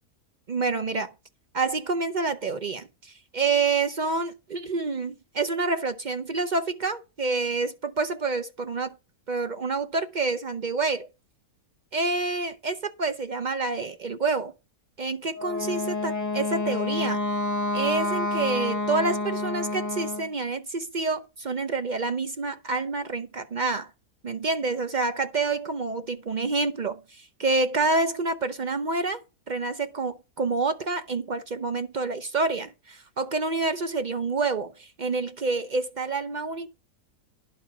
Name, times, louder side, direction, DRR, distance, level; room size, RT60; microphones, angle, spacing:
voice 1, 0.5-1.1 1.5-9.0 9.3-11.1 11.9-14.5 15.0-17.2 17.7-23.9 24.2-36.7, right 3 dB, 55° right, 0.5 m, -28 dB
Wind instrument woodwind instrument, 15.3-20.3, left 2 dB, 15° left, 0.9 m, -28 dB
11.0 x 4.6 x 5.9 m
omnidirectional pair, 1.7 m